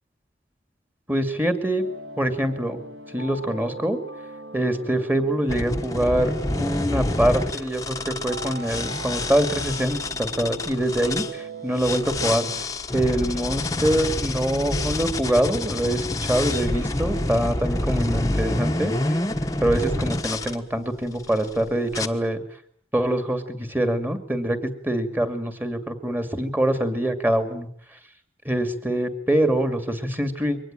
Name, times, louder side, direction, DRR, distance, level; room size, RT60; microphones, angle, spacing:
voice 1, 1.1-1.9 2.2-2.8 3.1-4.0 4.5-12.7 12.9-19.2 19.6-22.4 22.9-27.7 28.4-30.6, right 1 dB, 10° right, 8 dB, 2.4 m, -24 dB
sound 1, 1.8-12.6, right 2 dB, 70° right, 2.3 m, -40 dB
sound 2, 5.5-11.3 11.8-20.6 21.2-21.5 21.9-22.1, left 2 dB, 20° left, 1.2 m, -27 dB
24.0 x 19.0 x 9.1 m, 0.63 s
head